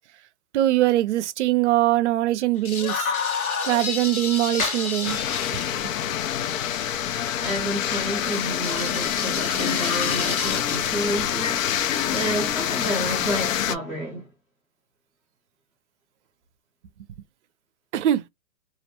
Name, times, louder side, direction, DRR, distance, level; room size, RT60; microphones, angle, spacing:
voice 1, 0.5-3.1 3.6-5.2 5.8-5.9 17.9-18.2, right 14 dB, 55° right, 0.5 m, -22 dB
sound 1, 2.6-5.7 7.2-10.9 11.2-11.3, left 5 dB, 85° left, 1.1 m, -30 dB
sound 2, 5.0-13.8, left 10 dB, 70° left, 0.5 m, -26 dB
voice 2, 7.4-14.3, right 1 dB, 15° left, 0.5 m, -30 dB
2.5 x 2.1 x 2.9 m
hypercardioid pair, 150°, 42 cm